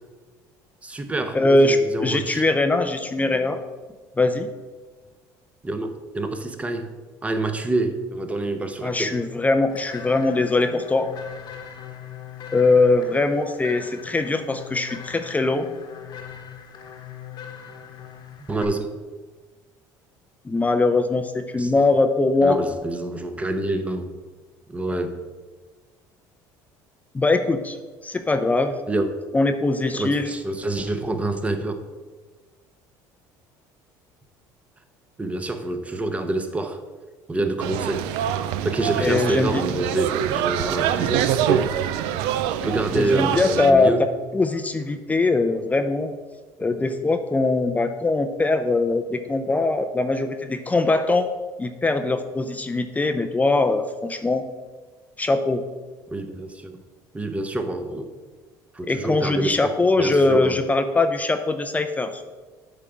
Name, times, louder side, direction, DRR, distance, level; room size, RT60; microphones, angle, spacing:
voice 1, 0.8-2.4 5.6-6.9 7.2-9.2 18.5-18.9 21.6-21.7 22.4-24.1 24.7-25.2 28.9-29.1 29.9-31.7 35.2-36.8 37.3-38.1 38.6-41.7 42.6-44.1 56.1-56.8 57.1-58.1 58.7-60.6, right 2 dB, 15° right, 7 dB, 0.9 m, -27 dB
voice 2, 1.3-3.6 4.2-4.5 8.8-11.1 12.5-15.7 20.5-22.6 27.1-27.8 28.0-28.8 29.3-30.3 39.0-39.6 42.9-43.9 44.3-46.1 46.6-51.3 51.6-54.4 55.2-55.6 58.8-62.2, left 3 dB, 15° left, 8 dB, 0.5 m, -21 dB
sound 1, 9.7-18.6, left 8 dB, 55° left, 1.1 m, -40 dB
sound 2, 37.6-43.7, right 10 dB, 85° right, 0.4 m, -25 dB
8.3 x 3.8 x 5.8 m, 1.3 s
supercardioid pair, 100°, 9 cm